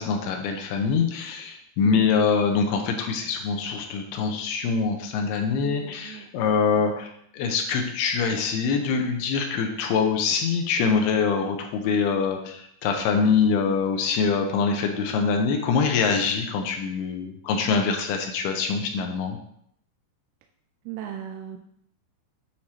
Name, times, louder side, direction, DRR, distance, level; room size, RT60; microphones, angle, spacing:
voice 1, 0.0-19.4, left 5 dB, 80° left, 3 dB, 2.5 m, -24 dB
voice 2, 1.8-2.1 5.6-6.3 20.9-21.6, right 10 dB, 85° right, 3 dB, 2.4 m, -35 dB
8.6 x 4.6 x 2.8 m, 0.70 s
omnidirectional pair, 4.7 m